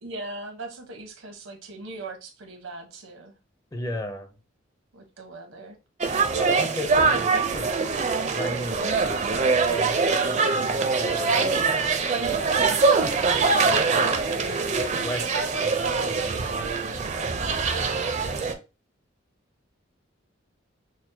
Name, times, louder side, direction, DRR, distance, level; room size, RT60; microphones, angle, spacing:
voice 1, 0.0-3.3 4.9-5.8 12.2-12.8 13.9-14.2 15.2-18.3, right 3 dB, 85° right, 1.0 m, -38 dB
voice 2, 3.7-4.4 6.4-11.5 13.4-14.1 14.7-15.2 15.6-15.8 16.1-16.3, left 1 dB, 20° left, 0.5 m, -36 dB
sound 1, 6.0-18.5, right 4 dB, 35° right, 0.5 m, -23 dB
6.1 x 2.1 x 2.7 m
head